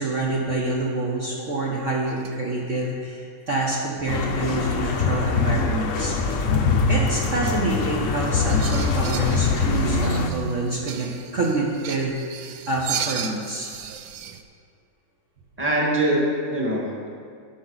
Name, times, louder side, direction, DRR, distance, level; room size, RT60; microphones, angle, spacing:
voice 1, 0.0-6.5 6.9-13.7, right 2 dB, 45° right, -4 dB, 1.3 m, -27 dB
sound 1, 2.1-2.4 2.7-2.9 8.5-14.4, right 9 dB, 90° right, 1.4 m, -35 dB
sound 2, 4.1-10.3, left 4 dB, 55° left, 0.9 m, -23 dB
voice 2, 15.6-17.1, right 1 dB, 5° right, -4 dB, 1.5 m, -23 dB
17.0 x 6.0 x 4.0 m, 2.2 s
omnidirectional pair, 2.0 m